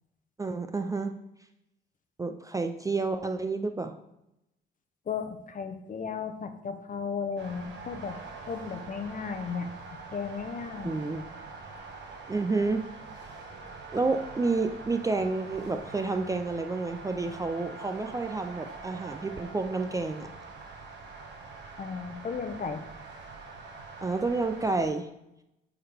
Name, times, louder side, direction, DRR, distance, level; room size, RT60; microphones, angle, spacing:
voice 1, 0.4-1.2 2.2-3.9 10.8-11.2 12.3-12.8 13.9-20.3 24.0-25.1, right 3 dB, 15° right, 6 dB, 0.4 m, -30 dB
voice 2, 5.1-8.2 8.5-9.7 10.1-11.0 21.8-22.8, left 6 dB, 40° left, 7 dB, 0.8 m, -35 dB
sound 1, 7.4-24.9, right 4 dB, 60° right, 1.3 m, -44 dB
8.7 x 3.8 x 3.5 m, 0.89 s
cardioid pair, 90°, 20 cm